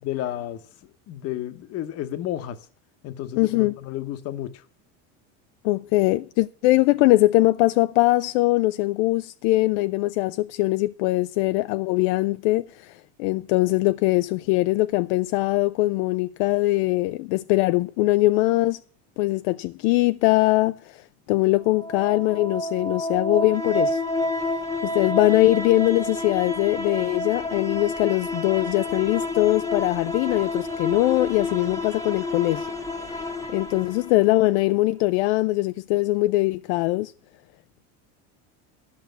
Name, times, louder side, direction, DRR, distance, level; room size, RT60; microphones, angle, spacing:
voice 1, 0.0-2.6 3.0-4.6, left 12 dB, 45° left, 1.0 m, -32 dB
voice 2, 3.4-3.7 5.6-18.8 19.2-21.0 21.3-24.0 24.8-32.7 33.5-37.1, left 19 dB, 75° left, 0.5 m, -22 dB
sound 1, 21.6-34.6, left 2 dB, 10° left, 1.0 m, -29 dB
11.5 x 6.1 x 7.8 m
cardioid pair, 155°, 35 cm